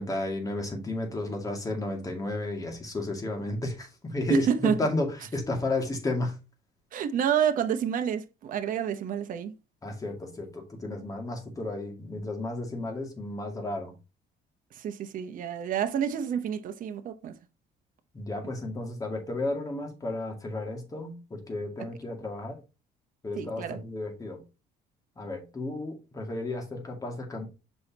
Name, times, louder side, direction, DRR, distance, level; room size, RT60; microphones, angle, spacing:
voice 1, 0.0-6.3 9.8-13.9 18.1-22.6 23.2-24.4 25.2-27.5, left 2 dB, 20° left, 2.2 m, -33 dB
voice 2, 4.3-4.8 6.9-9.5 14.8-17.4 23.4-23.8, right 8 dB, 55° right, 0.9 m, -28 dB
6.3 x 5.5 x 2.9 m
cardioid pair, 125°, 17 cm